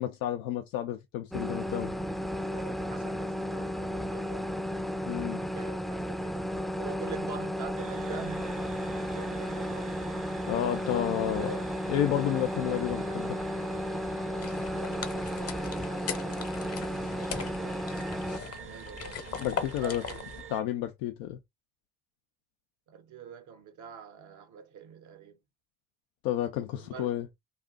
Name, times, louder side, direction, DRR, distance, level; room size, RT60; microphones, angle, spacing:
voice 1, 0.0-1.9 5.1-5.4 10.5-11.5 11.9-13.4 19.4-20.0 20.5-21.4 26.2-27.3, left 11 dB, 90° left, 0.5 m, -31 dB
sound 1, 1.3-18.4, equal, ahead, 0.4 m, -34 dB
voice 2, 2.5-4.8 5.4-8.5 9.0-10.1 11.0-11.7 14.7-16.5 17.1-17.9 18.5-19.3 19.6-20.3 22.9-25.4 26.8-27.1, right 7 dB, 70° right, 0.9 m, -46 dB
sound 2, 7.8-20.6, right 7 dB, 40° right, 0.7 m, -45 dB
sound 3, 14.4-20.4, left 6 dB, 50° left, 0.9 m, -40 dB
2.4 x 2.4 x 3.7 m
supercardioid pair, 60°, 31 cm